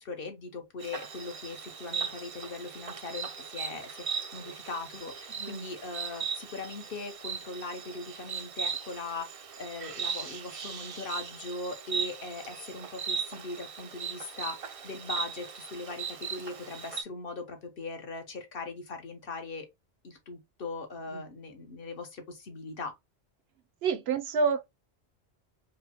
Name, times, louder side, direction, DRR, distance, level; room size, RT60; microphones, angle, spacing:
voice 1, 0.0-4.0 4.3-9.3 9.6-19.7 20.0-22.9, left 3 dB, 60° left, 1.1 m, -40 dB
Insect, 0.8-17.0, right 6 dB, 50° right, 0.4 m, -38 dB
voice 2, 5.3-5.7 21.1-21.2 23.8-24.6, right 5 dB, 70° right, 0.8 m, -29 dB
4.9 x 2.1 x 2.8 m
omnidirectional pair, 1.1 m